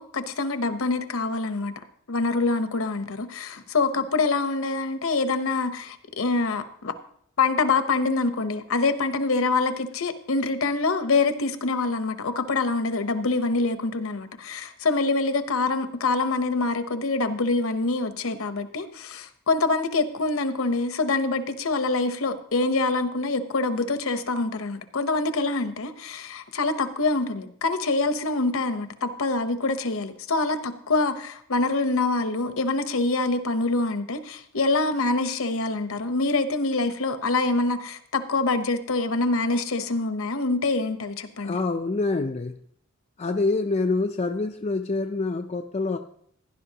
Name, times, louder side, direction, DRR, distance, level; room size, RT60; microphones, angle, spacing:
voice 1, 0.0-6.9 7.4-41.6, left 3 dB, 65° left, 10 dB, 0.9 m, -25 dB
voice 2, 41.4-42.6 43.2-46.0, left 3 dB, 30° left, 4 dB, 0.4 m, -26 dB
16.0 x 11.0 x 2.9 m, 0.67 s
head